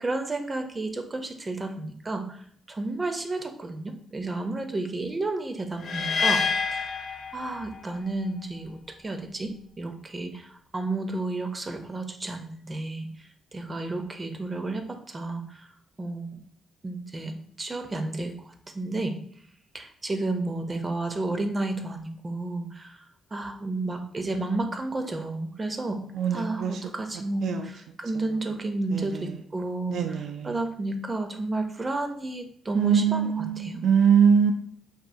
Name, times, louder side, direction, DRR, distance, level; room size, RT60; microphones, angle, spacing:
voice 1, 0.0-2.4 2.7-6.4 6.7-6.9 7.3-13.1 13.5-15.7 16.0-16.4 16.8-19.1 19.7-23.0 23.3-26.0 26.3-33.8, right 2 dB, 25° right, 5 dB, 0.6 m, -32 dB
sound 1, 5.8-8.0, left 5 dB, 55° left, 0.4 m, -27 dB
voice 2, 26.2-26.7 27.4-27.7 28.9-29.1 29.9-30.5 32.8-34.5, right 7 dB, 70° right, 6 dB, 0.3 m, -22 dB
4.9 x 2.6 x 2.6 m, 0.64 s
cardioid pair, 90°, 0 cm